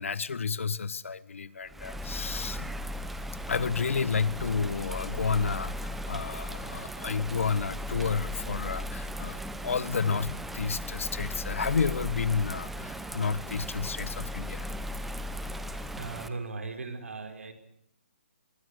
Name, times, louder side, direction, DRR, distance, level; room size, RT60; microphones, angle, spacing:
voice 1, 0.0-2.7 3.5-14.7, left 5 dB, 75° left, 16 dB, 1.5 m, -31 dB
Bird vocalization bird call bird song / Rain, 1.7-16.3, equal, 5° right, 1.0 m, -37 dB
voice 2, 15.9-17.5, right 3 dB, 80° right, 7 dB, 5.2 m, -38 dB
25.5 x 22.0 x 6.7 m, 0.74 s
hypercardioid pair, 160°, 7 cm